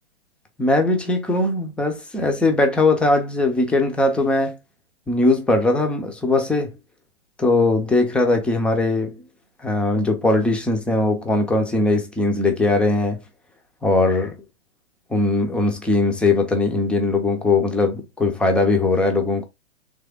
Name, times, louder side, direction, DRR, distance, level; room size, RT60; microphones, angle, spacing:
voice 1, 0.6-4.6 5.1-6.7 7.4-9.2 9.6-13.2 13.8-14.4 15.1-19.5, left 2 dB, 5° left, 0.4 m, -20 dB
3.4 x 3.3 x 3.5 m
hypercardioid pair, 135°, 35 cm